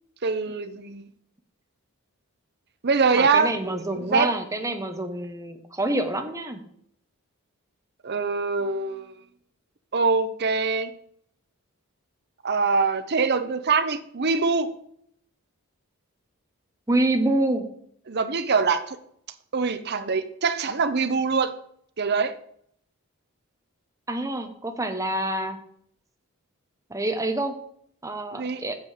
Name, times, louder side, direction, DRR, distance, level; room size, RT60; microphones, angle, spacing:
voice 1, 0.2-1.0 2.8-4.3 8.0-9.1 9.9-10.9 12.4-14.7 18.1-19.0 19.5-21.5 22.0-22.3 28.3-28.6, right 4 dB, 50° right, 10 dB, 0.8 m, -24 dB
voice 2, 3.1-6.6 16.9-17.6 24.1-25.6 26.9-27.6 28.0-28.8, right 1 dB, 15° right, 6 dB, 1.0 m, -27 dB
8.1 x 7.8 x 5.0 m, 0.68 s
head